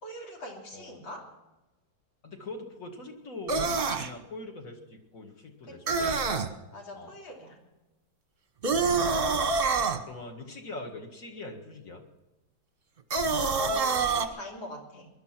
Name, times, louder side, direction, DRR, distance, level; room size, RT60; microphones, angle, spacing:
voice 1, 0.0-1.3 5.7-6.3 6.7-7.6 13.5-15.1, left 1 dB, 70° left, 0 dB, 3.9 m, -43 dB
voice 2, 2.2-6.0 6.9-7.1 8.7-9.1 10.1-12.0, left 2 dB, 40° left, 3 dB, 2.3 m, -42 dB
sound 1, 3.5-4.1 5.9-6.5 8.6-10.0 13.1-14.3, right 4 dB, 35° right, 1.1 m, -26 dB
20.0 x 12.0 x 6.0 m, 1.1 s
omnidirectional pair, 2.2 m